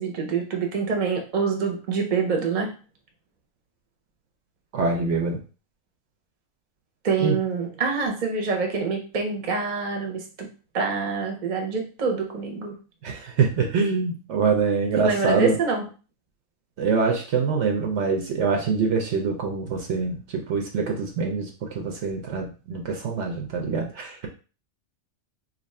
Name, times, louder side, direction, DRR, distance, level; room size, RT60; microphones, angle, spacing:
voice 1, 0.0-2.7 7.0-10.5 10.7-12.7 14.9-15.8, right 5 dB, 40° right, 1 dB, 0.8 m, -26 dB
voice 2, 4.7-5.4 7.2-7.4 13.0-15.6 16.8-24.3, right 5 dB, 70° right, 2 dB, 1.0 m, -24 dB
2.8 x 2.5 x 4.1 m, 0.35 s
omnidirectional pair, 1.3 m